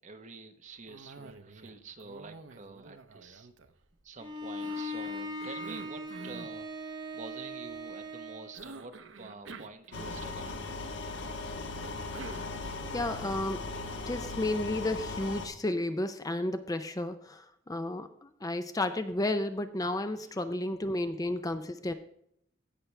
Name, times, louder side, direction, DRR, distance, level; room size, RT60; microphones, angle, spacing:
voice 1, 0.0-3.5 4.0-10.6, right 3 dB, 40° right, 7 dB, 1.0 m, -48 dB
Cough, 0.9-1.7 2.0-4.1 4.6-6.6 8.5-10.5 11.8-13.1, right 3 dB, 75° right, 0.8 m, -48 dB
Bowed string instrument, 4.2-8.6, equal, 25° right, 1.7 m, -39 dB
sound 1, 9.9-15.5, left 3 dB, 65° left, 1.4 m, -38 dB
voice 2, 12.9-13.7 14.1-21.9, left 1 dB, 20° left, 10 dB, 0.5 m, -32 dB
16.5 x 6.0 x 3.3 m, 0.72 s
head